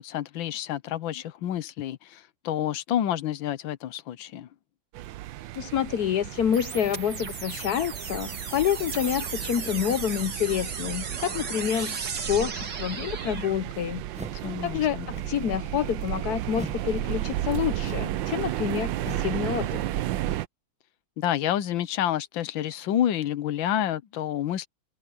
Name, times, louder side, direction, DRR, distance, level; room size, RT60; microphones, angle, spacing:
voice 1, 0.0-4.5 14.3-15.1 21.2-24.7, left 11 dB, 85° left, 1.6 m, -29 dB
sound 1, 4.9-20.5, right 14 dB, 80° right, 1.4 m, -33 dB
voice 2, 5.6-12.0 12.3-14.0 14.6-19.8, left 9 dB, 65° left, 1.1 m, -28 dB
sound 2, 6.5-13.5, right 5 dB, 65° right, 2.8 m, -36 dB
sound 3, 14.1-14.5 15.0-15.4 16.5-16.9 17.8-18.2 19.0-19.4, right 1 dB, 5° right, 0.6 m, -41 dB
omnidirectional pair, 2.0 m